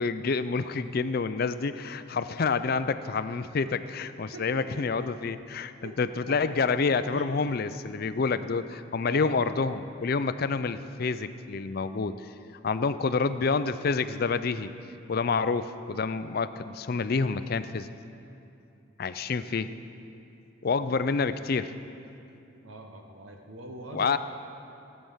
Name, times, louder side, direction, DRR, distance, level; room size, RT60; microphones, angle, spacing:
voice 1, 0.0-12.3 12.6-14.7 15.1-17.9 19.0-19.7 20.6-21.7 23.9-24.2, left 4 dB, 50° left, 12 dB, 0.4 m, -28 dB
voice 2, 4.3-5.1 5.8-6.0 6.3-7.3 7.8-8.4 9.1-9.5 22.6-24.2, right 2 dB, 85° right, 3 dB, 1.0 m, -44 dB
15.5 x 8.8 x 5.6 m, 2.7 s
head